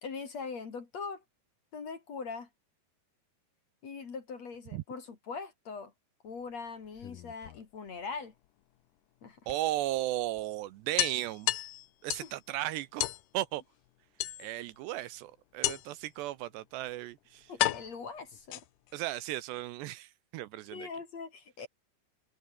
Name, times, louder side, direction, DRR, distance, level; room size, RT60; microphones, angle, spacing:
voice 1, 0.0-1.2 1.7-2.5 3.8-5.9 6.2-8.3 9.2-9.4 12.2-12.3 17.5-18.6 20.7-21.7, left 5 dB, 40° left, 3.3 m, -41 dB
sound 1, 6.9-8.0 9.5-9.6 10.0-10.1 10.4-10.5 11.0-12.4 13.0-13.2 14.2-14.8 15.6-16.1 16.9-17.0 17.6-19.0, left 15 dB, 75° left, 2.0 m, -33 dB
voice 2, 9.5-11.5 12.0-13.1 13.3-13.6 14.4-17.5 18.9-20.9, right 15 dB, 80° right, 2.9 m, -35 dB
omnidirectional pair, 5.2 m